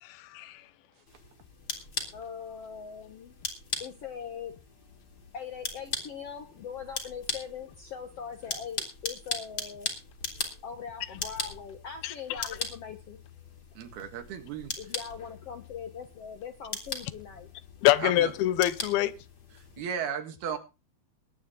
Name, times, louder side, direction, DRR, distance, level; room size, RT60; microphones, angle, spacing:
voice 1, 0.0-0.6 12.0-12.4 17.8-19.1, left 14 dB, 85° left, 2.7 m, -26 dB
sound 1, 1.1-19.8, left 4 dB, 35° left, 3.4 m, -40 dB
voice 2, 2.1-3.3 3.8-4.5 5.3-9.9 10.6-13.2 14.8-17.5, left 7 dB, 65° left, 1.6 m, -41 dB
voice 3, 13.8-14.7 18.0-18.3 19.8-20.6, right 8 dB, 85° right, 3.8 m, -35 dB
21.0 x 8.8 x 3.8 m
omnidirectional pair, 4.3 m